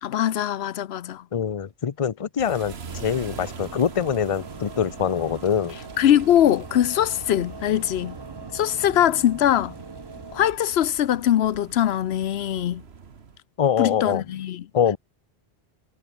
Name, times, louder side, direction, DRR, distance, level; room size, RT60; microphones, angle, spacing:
voice 1, 0.0-1.2 6.0-8.2 8.5-9.7 10.3-12.8 13.8-14.6, left 11 dB, 85° left, 0.9 m, -22 dB
voice 2, 1.3-5.8 13.6-14.2 14.7-15.0, left 8 dB, 35° left, 0.7 m, -24 dB
sound 1, 2.4-13.4, right 5 dB, 85° right, 1.7 m, -43 dB
sound 2, 2.9-10.5, right 3 dB, 25° right, 0.9 m, -41 dB
omnidirectional pair, 1.0 m